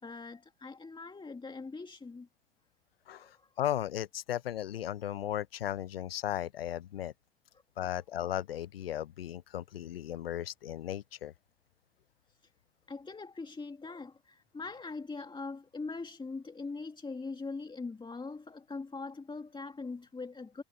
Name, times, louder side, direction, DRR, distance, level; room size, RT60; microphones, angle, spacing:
voice 1, 0.0-2.3 3.1-3.5 12.3-12.5 12.9-20.6, left 3 dB, 15° left, 2.7 m, -42 dB
voice 2, 3.6-7.1 7.8-11.3, left 11 dB, 85° left, 0.7 m, -36 dB
hypercardioid pair, 80°, 29 cm